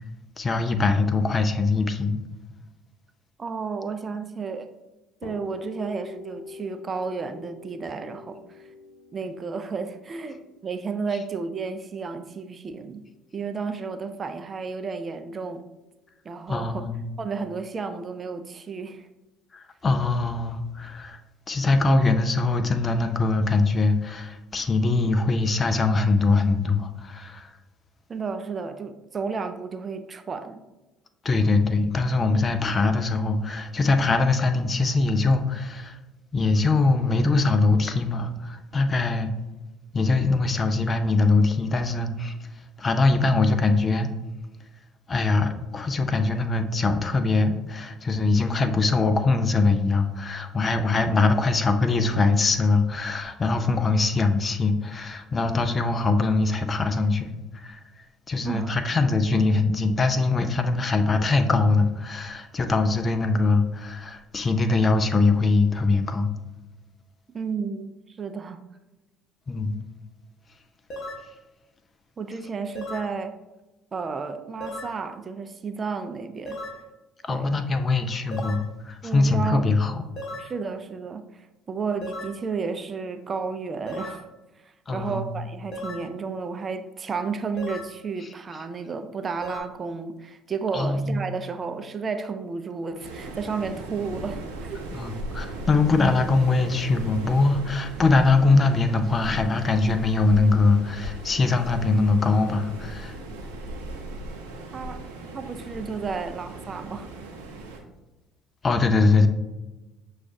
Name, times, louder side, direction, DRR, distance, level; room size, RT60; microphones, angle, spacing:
voice 1, 0.4-2.2 16.5-17.1 19.5-21.2 21.5-27.5 31.2-36.0 36.3-39.3 39.9-42.5 42.8-44.1 45.1-57.3 57.5-57.8 58.3-66.3 69.5-69.8 77.2-80.0 84.9-85.3 90.7-91.2 94.9-103.2 108.6-109.3, left 3 dB, 35° left, 8 dB, 0.5 m, -22 dB
voice 2, 3.4-4.7 5.2-8.7 9.1-10.4 10.6-13.0 13.3-15.6 16.2-16.8 17.2-19.1 28.1-30.6 58.4-58.7 67.3-68.6 72.2-73.4 73.9-76.6 77.3-77.5 79.0-79.7 80.4-84.3 84.6-94.8 104.7-105.1 105.3-107.1, right 5 dB, 35° right, 8 dB, 0.3 m, -32 dB
sound 1, 5.2-12.9, left 4 dB, 80° left, 0.6 m, -44 dB
sound 2, 70.9-71.3 72.8-73.1 74.6-75.0 76.5-76.8 78.3-78.7 80.2-80.5 82.0-82.4 83.9-84.2 85.7-86.1 87.6-87.9 89.4-89.6, left 1 dB, 50° left, 1.0 m, -36 dB
Waves surf, 93.0-107.8, right 2 dB, 75° right, 0.6 m, -38 dB
6.1 x 2.4 x 2.6 m, 1.1 s
hypercardioid pair, 60°, 0 cm